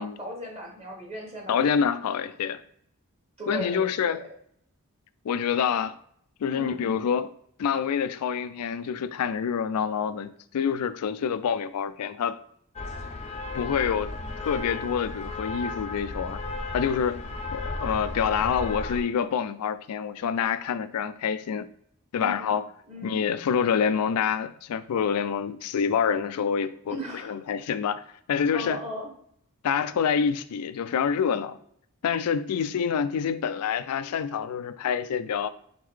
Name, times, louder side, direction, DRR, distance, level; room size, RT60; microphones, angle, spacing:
voice 1, 0.0-1.6 3.4-4.2 6.5-7.1 22.2-22.6 22.9-23.3 26.9-27.4 28.5-29.1, equal, 30° right, 1.2 m, -37 dB
voice 2, 1.5-2.6 3.5-4.2 5.2-6.0 6.4-7.3 7.6-12.4 13.5-14.1 14.4-16.4 16.7-17.2 17.5-21.7 22.1-22.7 23.0-27.0 27.2-28.0 28.3-28.8 29.6-31.6 32.0-35.5, left 7 dB, 85° left, 0.3 m, -27 dB
sound 1, 12.8-19.0, left 3 dB, 30° left, 0.5 m, -34 dB
4.3 x 3.7 x 3.2 m
head